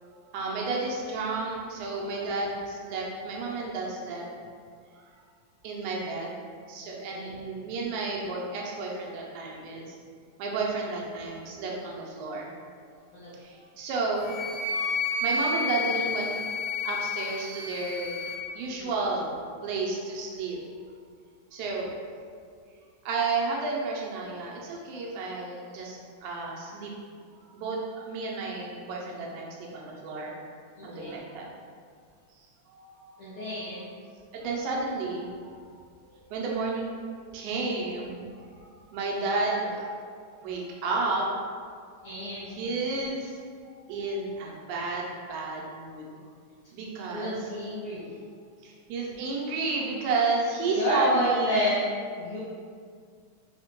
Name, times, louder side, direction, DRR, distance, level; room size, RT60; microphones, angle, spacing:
voice 1, 0.2-4.2 5.6-6.4 6.7-9.9 10.4-12.5 13.4-16.3 16.8-18.2 18.5-19.4 19.6-20.6 21.5-21.9 23.1-26.9 27.5-30.3 30.8-31.5 32.7-33.2 34.3-35.6 36.0-39.9 40.4-41.3 42.4-43.4 43.6-46.1 46.7-47.5 48.6-51.6, right 3 dB, 80° right, -3 dB, 2.0 m, -32 dB
voice 2, 6.8-7.3 13.1-13.3 18.8-18.9 30.8-31.2 33.2-33.9 42.0-42.6 47.1-48.1 50.7-52.4, equal, 85° left, -9 dB, 1.3 m, -30 dB
Wind instrument woodwind instrument, 14.2-18.4, left 3 dB, 55° left, 1.3 m, -30 dB
5.0 x 2.1 x 2.9 m, 2.1 s
omnidirectional pair, 3.4 m